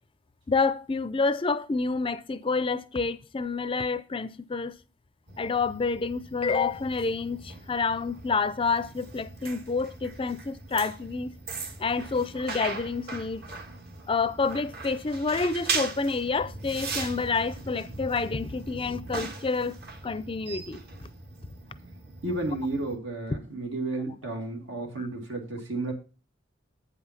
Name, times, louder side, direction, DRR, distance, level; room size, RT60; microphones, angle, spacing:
voice 1, 0.5-4.7 5.4-11.3 11.8-13.4 14.1-19.7 20.0-20.8 25.0-25.1, left 4 dB, 30° left, 0.4 m, -28 dB
sound 1, 5.3-23.0, right 3 dB, 55° right, 1.7 m, -39 dB
voice 2, 22.2-25.9, right 2 dB, 80° right, 2.2 m, -32 dB
8.4 x 5.6 x 5.8 m
head